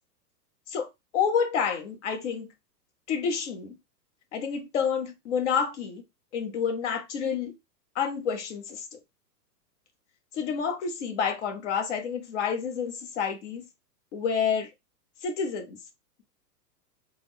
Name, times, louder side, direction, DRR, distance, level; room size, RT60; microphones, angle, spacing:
voice 1, 1.1-2.5 3.1-3.8 4.3-6.0 6.3-7.5 7.9-9.0 10.3-13.6 14.1-14.7 15.2-15.8, left 6 dB, 45° left, 0.9 m, -29 dB
4.0 x 2.0 x 3.2 m
hypercardioid pair, 160°, 49 cm